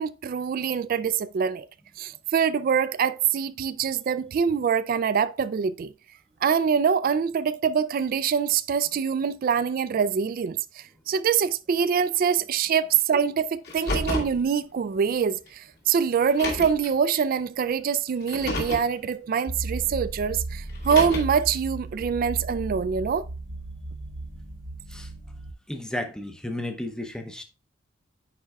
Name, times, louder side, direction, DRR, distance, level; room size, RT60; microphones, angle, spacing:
voice 1, 0.0-1.7 2.0-5.9 6.4-23.2, right 7 dB, 45° right, 0.3 m, -24 dB
Car, 13.6-14.4 15.5-15.6 16.3-16.9 18.2-18.9 20.7-21.4, left 2 dB, 55° left, 2.1 m, -30 dB
sound 1, 19.5-25.5, right 2 dB, 65° right, 1.0 m, -35 dB
voice 2, 25.7-27.4, left 1 dB, 5° left, 0.6 m, -33 dB
9.7 x 4.4 x 2.3 m
head